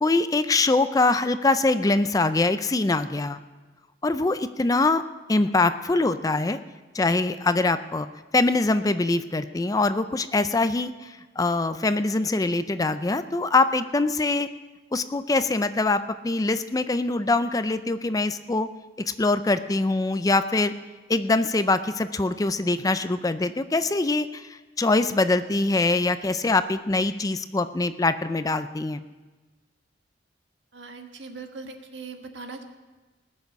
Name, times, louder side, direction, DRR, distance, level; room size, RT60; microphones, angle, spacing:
voice 1, 0.0-3.4 4.0-5.0 5.3-6.6 6.9-8.1 8.3-14.5 14.9-18.7 19.2-20.7 21.1-29.0, left 2 dB, 20° left, 12 dB, 0.4 m, -23 dB
voice 2, 30.7-32.6, right 4 dB, 80° right, 5 dB, 1.4 m, -40 dB
19.5 x 6.7 x 7.0 m, 1.3 s
head